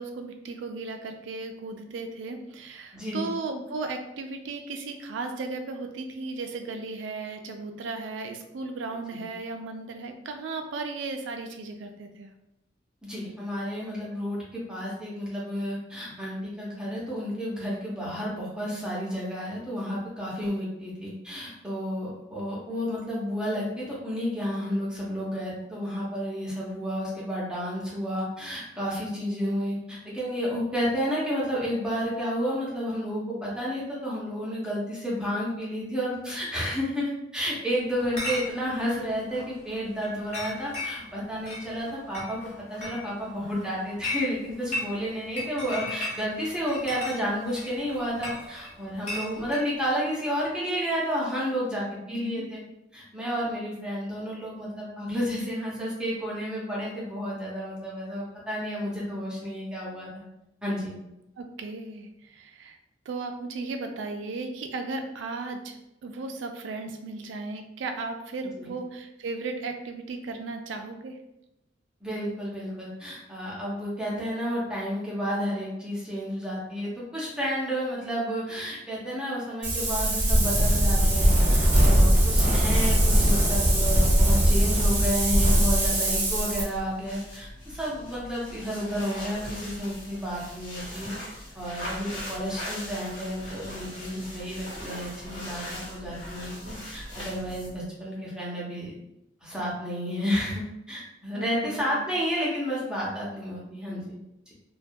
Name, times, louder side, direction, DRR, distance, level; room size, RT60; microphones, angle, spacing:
voice 1, 0.0-12.3 52.1-52.4 61.4-62.8 63.1-71.2 101.3-102.0, right 3 dB, 80° right, 5 dB, 0.3 m, -36 dB
voice 2, 2.9-3.3 9.1-9.2 13.0-42.4 42.7-52.6 52.9-60.2 60.6-60.9 68.6-68.7 72.0-91.2 91.5-98.9 99.4-104.2, equal, 5° right, -6 dB, 0.6 m, -31 dB
Chatter / Chink clink, 38.0-49.7, left 2 dB, 40° left, 0.7 m, -37 dB
Wind, 79.6-86.6, right 1 dB, 45° right, 0.7 m, -21 dB
sound 1, 84.3-97.8, equal, 80° left, 1.0 m, -40 dB
2.2 x 2.2 x 2.6 m, 0.88 s
head